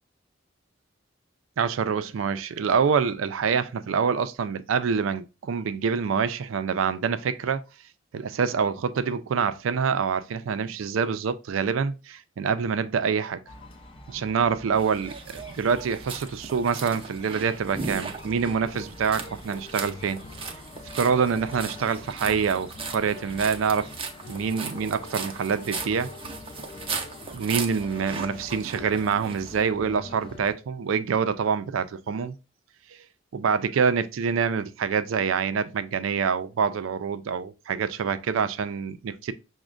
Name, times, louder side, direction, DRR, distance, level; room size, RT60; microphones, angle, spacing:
voice 1, 1.6-7.6 8.1-13.4 14.1-20.2 20.9-23.9 24.3-26.1 27.3-32.3 33.3-39.3, right 6 dB, 85° right, 0.4 m, -26 dB
sound 1, 13.5-30.5, left 3 dB, 30° left, 0.4 m, -44 dB
sound 2, 14.8-29.5, right 5 dB, 25° right, 0.5 m, -38 dB
6.0 x 2.1 x 2.4 m
head